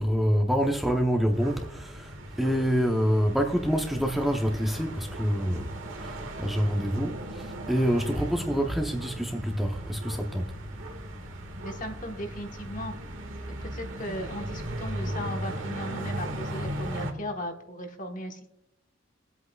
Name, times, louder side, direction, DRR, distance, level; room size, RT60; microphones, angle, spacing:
voice 1, 0.0-11.2, equal, ahead, 0.7 m, -27 dB
sound 1, 1.3-17.1, right 1 dB, 80° right, 1.8 m, -37 dB
voice 2, 11.6-12.9 13.6-18.5, equal, 40° left, 1.2 m, -37 dB
21.0 x 8.2 x 2.3 m
head